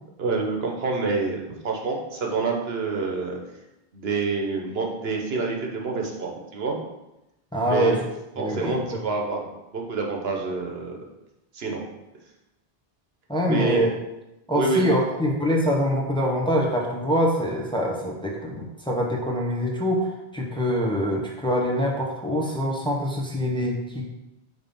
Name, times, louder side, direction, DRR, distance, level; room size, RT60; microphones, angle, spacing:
voice 1, 0.2-3.4 3.9-6.8 7.6-8.0 8.4-11.0 11.5-11.8 13.5-13.9 14.5-15.0, right 4 dB, 75° right, 1 dB, 1.2 m, -27 dB
voice 2, 7.5-8.0 8.4-9.0 13.3-13.9 14.5-20.1 20.3-24.1, equal, 5° left, -2 dB, 0.9 m, -24 dB
5.3 x 3.9 x 5.4 m, 0.94 s
omnidirectional pair, 1.0 m